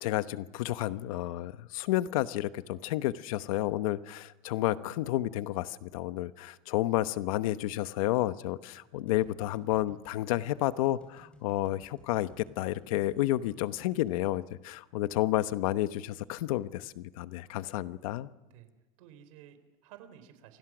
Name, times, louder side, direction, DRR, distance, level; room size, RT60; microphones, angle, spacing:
voice 1, 0.0-18.3, left 15 dB, 80° left, 13 dB, 1.1 m, -31 dB
sound 1, 9.1-14.2, left 2 dB, 5° left, 3.1 m, -60 dB
voice 2, 19.0-20.6, right 10 dB, 75° right, 10 dB, 3.9 m, -54 dB
29.0 x 25.0 x 6.2 m, 1.1 s
cardioid pair, 180°, 18 cm